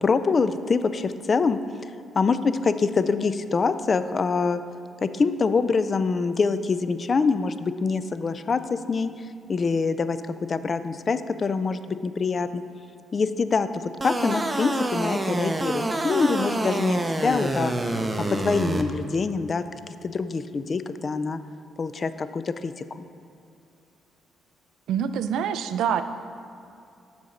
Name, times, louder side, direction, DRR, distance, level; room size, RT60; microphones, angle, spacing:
voice 1, 0.0-1.6 2.1-4.6 5.0-12.6 13.1-21.4 21.8-23.1, left 4 dB, 40° left, 12 dB, 0.3 m, -25 dB
sound 1, 14.0-18.8, right 2 dB, 20° right, 0.6 m, -27 dB
voice 2, 24.9-26.0, right 8 dB, 80° right, 11 dB, 0.4 m, -25 dB
6.9 x 3.8 x 6.4 m, 2.6 s
cardioid pair, 90°, 0 cm